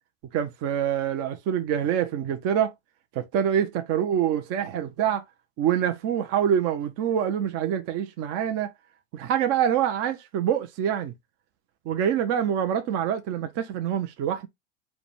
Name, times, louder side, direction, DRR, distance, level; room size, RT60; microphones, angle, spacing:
voice 1, 0.3-2.7 3.2-5.2 5.6-8.7 9.1-11.1 11.9-14.5, right 9 dB, 45° right, 0.7 m, -25 dB
4.8 x 2.3 x 3.2 m
supercardioid pair, 125°, 34 cm